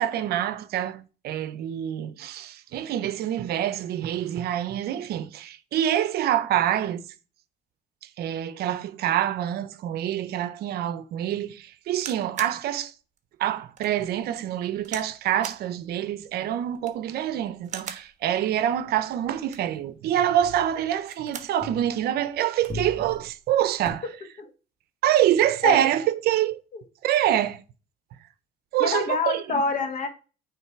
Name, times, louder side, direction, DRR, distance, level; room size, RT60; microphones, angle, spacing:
voice 1, 0.0-7.0 8.2-12.9 13.4-24.0 25.0-26.6 27.0-27.6 28.7-29.4, right 11 dB, 70° right, 0.6 m, -26 dB
sound 1, 11.9-12.6 13.2-13.3 13.8-13.9 14.8-15.1 15.4-15.7 16.7-17.1 17.6-18.1 19.3-19.8 20.9-21.6 22.0-22.1 22.3-22.8 23.7-23.9, right 7 dB, 45° right, 1.0 m, -40 dB
sound 2, 13.8-17.5 17.8-18.1 18.4-22.3 22.5-23.9, left 2 dB, 10° left, 2.5 m, -43 dB
voice 2, 28.8-30.1, left 4 dB, 50° left, 1.5 m, -26 dB
9.1 x 3.2 x 4.6 m
cardioid pair, 110°, 17 cm